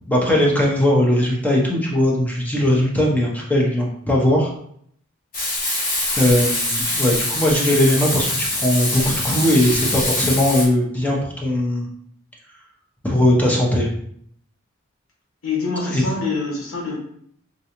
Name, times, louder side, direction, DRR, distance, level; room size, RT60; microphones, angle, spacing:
voice 1, 0.1-4.5 6.2-11.9 13.0-13.9 15.9-16.0, left 1 dB, 5° left, -2 dB, 0.6 m, -19 dB
Frying (food), 5.3-10.6, left 1 dB, 45° left, 1.4 m, -24 dB
voice 2, 15.4-17.0, left 4 dB, 75° left, -3 dB, 1.0 m, -25 dB
3.7 x 2.3 x 2.8 m, 0.67 s
head